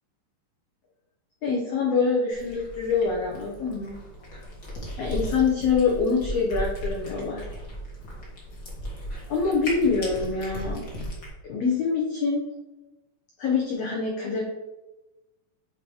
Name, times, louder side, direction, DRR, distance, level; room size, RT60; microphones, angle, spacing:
voice 1, 1.4-4.0 5.0-7.4 9.3-10.8 11.4-12.4 13.4-14.4, left 5 dB, 75° left, -2 dB, 1.5 m, -25 dB
Cat, 2.3-11.3, equal, 45° left, 1.1 m, -36 dB
7.8 x 2.9 x 4.7 m, 1.1 s
omnidirectional pair, 3.9 m